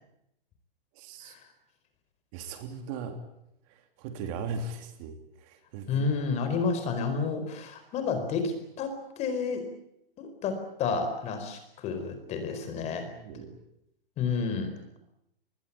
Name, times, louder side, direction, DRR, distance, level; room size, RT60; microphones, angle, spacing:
voice 1, 0.9-1.3 2.3-3.2 3.7-6.1 13.0-13.6, right 4 dB, 35° right, 7 dB, 3.2 m, -39 dB
voice 2, 5.9-9.7 10.2-13.1 14.2-14.7, left 5 dB, 20° left, 8 dB, 4.5 m, -30 dB
24.5 x 21.0 x 8.6 m, 0.79 s
hypercardioid pair, 155°, 29 cm